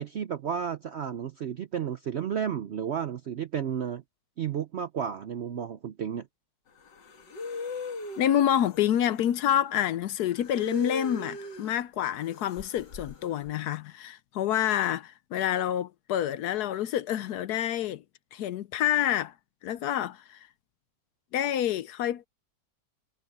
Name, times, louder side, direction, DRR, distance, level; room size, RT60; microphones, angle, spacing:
voice 1, 0.0-4.0 4.4-6.3, right 8 dB, 65° right, 0.6 m, -32 dB
sound 1, 6.8-9.5 10.3-11.8 12.2-13.5, left 3 dB, 90° left, 2.5 m, -38 dB
voice 2, 8.2-18.0 18.3-19.3 19.6-20.4 21.3-22.3, left 11 dB, 70° left, 1.1 m, -28 dB
omnidirectional pair, 1.8 m